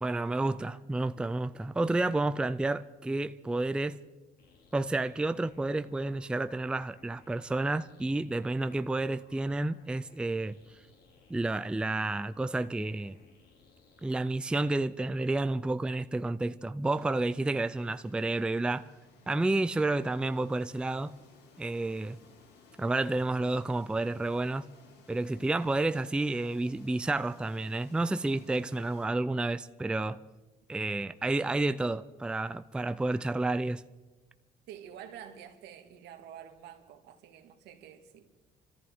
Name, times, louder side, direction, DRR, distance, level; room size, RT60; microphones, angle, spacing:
voice 1, 0.0-4.0 4.7-10.6 11.3-13.2 14.0-18.9 19.3-21.1 21.6-22.2 22.8-24.7 25.1-30.2 30.7-33.8, right 2 dB, 5° right, 0.4 m, -30 dB
sound 1, 4.4-14.2, left 4 dB, 65° left, 2.6 m, -62 dB
sound 2, 16.8-29.1, left 5 dB, 80° left, 2.4 m, -59 dB
voice 2, 34.7-38.3, right 9 dB, 85° right, 1.9 m, -48 dB
26.0 x 14.0 x 3.6 m
cardioid pair, 110°, 17 cm